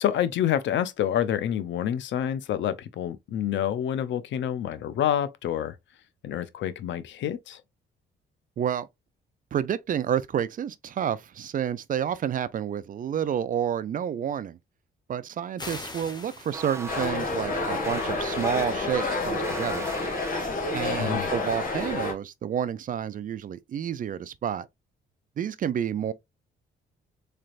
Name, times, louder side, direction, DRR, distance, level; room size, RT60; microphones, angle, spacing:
voice 1, 0.0-5.8 6.2-7.6 21.0-21.3, left 10 dB, 70° left, 0.5 m, -27 dB
voice 2, 8.6-8.9 9.5-14.6 15.1-19.9 20.7-24.7 25.4-26.1, right 9 dB, 45° right, 0.4 m, -29 dB
sound 1, 15.6-17.2, left 2 dB, 20° left, 1.0 m, -41 dB
sound 2, 16.5-20.7, right 3 dB, 15° right, 0.8 m, -40 dB
sound 3, 16.9-22.1, left 3 dB, 40° left, 1.7 m, -29 dB
3.9 x 3.3 x 2.4 m
cardioid pair, 90°, 20 cm